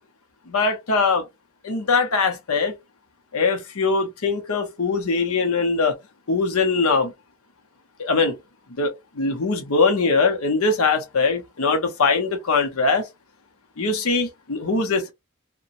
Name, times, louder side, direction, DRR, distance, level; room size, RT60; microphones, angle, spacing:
voice 1, 0.5-1.2 1.6-2.7 3.3-6.0 6.3-7.1 8.0-8.4 8.8-13.1 13.8-15.1, left 4 dB, 75° left, 0.7 m, -21 dB
2.8 x 2.1 x 2.5 m
head